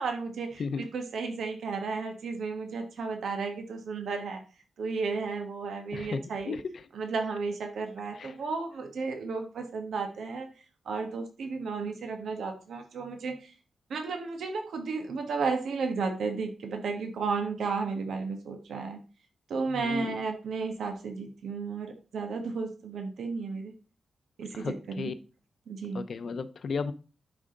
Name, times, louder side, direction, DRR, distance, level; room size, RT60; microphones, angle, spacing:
voice 1, 0.0-4.4 4.8-6.6 6.9-10.5 10.8-13.5 13.9-19.0 19.5-23.7 24.4-25.1 25.7-26.1, right 4 dB, 85° right, 1.5 m, -33 dB
voice 2, 5.9-6.9 8.1-8.3 19.7-20.2 24.5-25.1 25.9-26.9, left 5 dB, 60° left, 0.7 m, -35 dB
11.0 x 5.0 x 3.8 m
wide cardioid pair, 135°, 0 cm